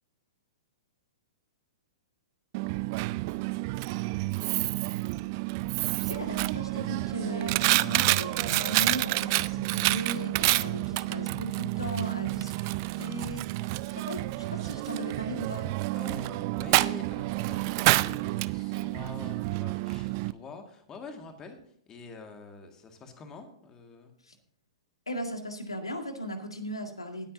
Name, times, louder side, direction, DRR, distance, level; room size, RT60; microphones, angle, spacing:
Coin (dropping), 2.5-20.3, right 21 dB, 40° right, 0.4 m, -29 dB
voice 1, 6.0-15.7 24.2-24.4 25.1-27.3, equal, 85° left, 5 dB, 2.0 m, -37 dB
voice 2, 10.9-11.3 15.9-21.6 21.9-24.1, left 4 dB, 20° left, 5 dB, 2.0 m, -46 dB
19.5 x 8.8 x 2.7 m, 0.65 s
figure-of-eight pair, 110°, 3 cm